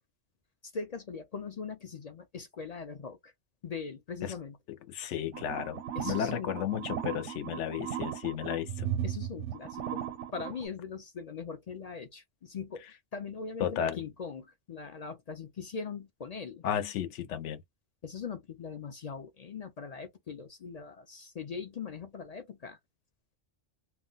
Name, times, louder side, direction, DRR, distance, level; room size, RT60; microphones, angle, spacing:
voice 1, 0.6-3.3 3.6-4.5 5.9-6.5 9.0-16.6 18.0-22.8, left 5 dB, 55° left, 0.4 m, -41 dB
voice 2, 4.9-8.9 13.6-14.0 16.6-17.6, left 9 dB, 80° left, 0.9 m, -33 dB
sound 1, 5.3-10.7, right 9 dB, 85° right, 0.9 m, -36 dB
2.3 x 2.2 x 3.7 m
omnidirectional pair, 1.2 m